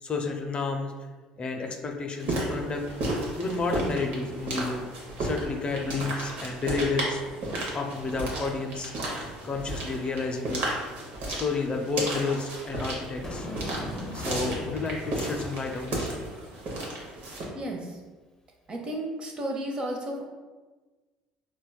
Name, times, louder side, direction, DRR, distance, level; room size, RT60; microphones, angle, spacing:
voice 1, 0.0-0.9 1.4-2.9 3.3-4.8 5.2-7.2 7.7-8.9 9.4-10.6 11.3-13.5 14.1-16.1, left 3 dB, 35° left, 3 dB, 0.4 m, -31 dB
sound 1, 2.2-17.5, right 1 dB, 60° right, 0.9 m, -33 dB
Boom, 13.2-16.5, left 1 dB, 15° left, 0.8 m, -38 dB
voice 2, 17.5-18.0 18.7-20.2, right 1 dB, 35° right, 1 dB, 0.7 m, -33 dB
4.1 x 2.2 x 2.2 m, 1.3 s
hypercardioid pair, 70°, 3 cm